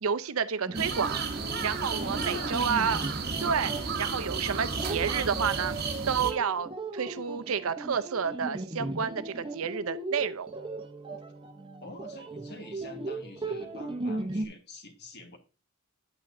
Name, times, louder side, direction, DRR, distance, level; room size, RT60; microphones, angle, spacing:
voice 1, 0.0-1.2 1.6-3.0 3.4-3.7 4.0-5.7 6.1-10.5, right 6 dB, 75° right, 0.6 m, -30 dB
sound 1, 0.7-14.5, right 2 dB, 25° right, 0.8 m, -37 dB
sound 2, 0.7-6.3, right 4 dB, 50° right, 1.0 m, -33 dB
voice 2, 2.0-2.7 3.4-3.8 11.8-15.4, left 2 dB, 50° left, 1.5 m, -46 dB
8.8 x 8.7 x 2.6 m
head